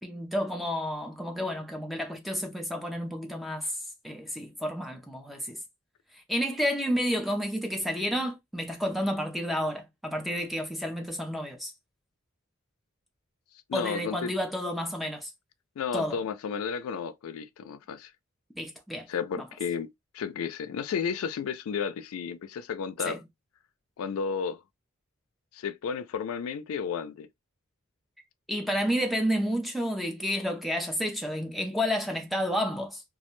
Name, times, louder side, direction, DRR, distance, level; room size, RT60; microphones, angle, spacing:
voice 1, 0.0-3.7 4.0-5.6 6.1-11.7 13.7-15.3 15.9-16.2 18.6-19.1 23.0-23.2 28.5-33.0, equal, ahead, 0.4 m, -30 dB
voice 2, 13.7-14.3 15.8-18.1 19.1-19.9 20.1-23.2 24.0-24.6 25.5-27.3, left 6 dB, 85° left, 0.3 m, -32 dB
2.3 x 2.1 x 3.0 m
head